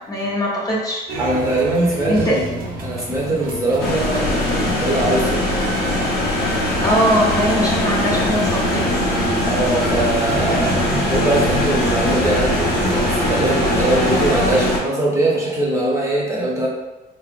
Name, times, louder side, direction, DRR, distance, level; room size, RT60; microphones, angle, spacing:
voice 1, 0.0-1.0 2.1-2.4 6.8-9.0, equal, 20° left, -5 dB, 0.8 m, -20 dB
sound 1, 1.1-14.6, right 2 dB, 60° right, 1.0 m, -29 dB
voice 2, 1.2-5.5 9.4-16.7, right 1 dB, 20° right, -4 dB, 1.0 m, -21 dB
sound 2, 3.8-14.8, left 1 dB, 90° left, 1.1 m, -21 dB
3.3 x 3.2 x 2.5 m, 1.1 s
cardioid pair, 110°, 17 cm